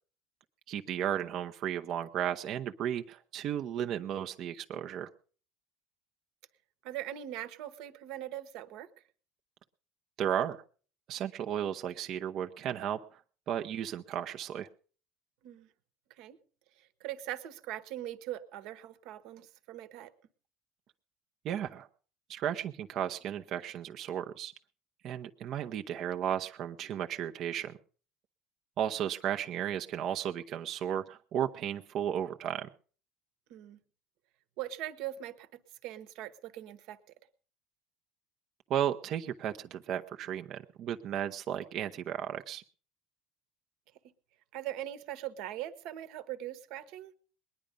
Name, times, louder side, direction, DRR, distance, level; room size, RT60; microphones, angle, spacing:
voice 1, 0.7-5.1 10.2-10.6 11.1-13.2 13.5-14.7 21.4-21.9 22.3-24.5 25.0-27.7 28.8-32.7 38.7-42.6, right 10 dB, 55° right, 6 dB, 0.8 m, -34 dB
voice 2, 6.8-8.9 15.4-15.7 16.2-16.4 16.8-20.1 33.5-33.8 34.6-37.0 44.5-47.1, right 13 dB, 70° right, 12 dB, 1.3 m, -41 dB
20.5 x 10.5 x 5.3 m, 0.42 s
supercardioid pair, 105°, 0 cm